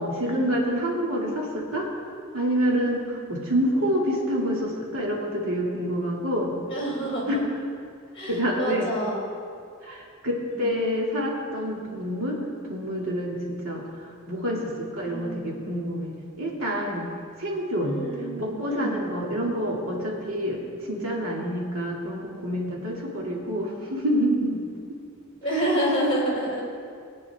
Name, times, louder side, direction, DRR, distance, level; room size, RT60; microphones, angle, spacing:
voice 1, 0.0-1.9 2.3-6.5 8.3-8.9 9.8-12.4 12.7-13.9 14.3-17.1 17.4-18.0 18.4-20.6 20.9-24.6 24.9-25.0 25.5-26.0, equal, 90° right, -2 dB, 2.5 m, -27 dB
voice 2, 6.7-7.4 8.1-9.3 10.5-10.7 15.0-15.7 17.8-19.0 25.4-26.6, right 1 dB, 25° left, -4 dB, 3.5 m, -29 dB
20.5 x 9.6 x 3.6 m, 2.3 s
head